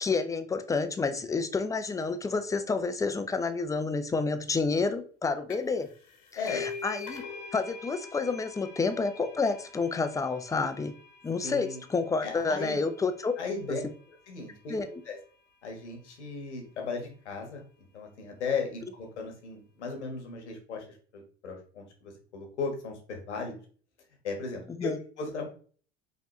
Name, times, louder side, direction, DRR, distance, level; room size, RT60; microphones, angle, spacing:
voice 1, 0.0-5.9 6.4-7.2 7.5-10.9 11.2-13.3 14.7-15.0 24.8-25.0, left 4 dB, 10° left, 9 dB, 0.5 m, -29 dB
sound 1, 5.5-5.8 6.1-13.4, left 5 dB, 60° left, 1.1 m, -44 dB
voice 2, 6.3-6.7 11.4-11.8 12.2-12.8 13.4-13.8 14.3-14.8 15.1-15.2 15.6-17.6 17.9-20.9 21.1-23.5 24.2-25.5, left 4 dB, 80° left, 2 dB, 1.3 m, -36 dB
5.1 x 2.9 x 3.1 m, 0.43 s
figure-of-eight pair, 70°, 34 cm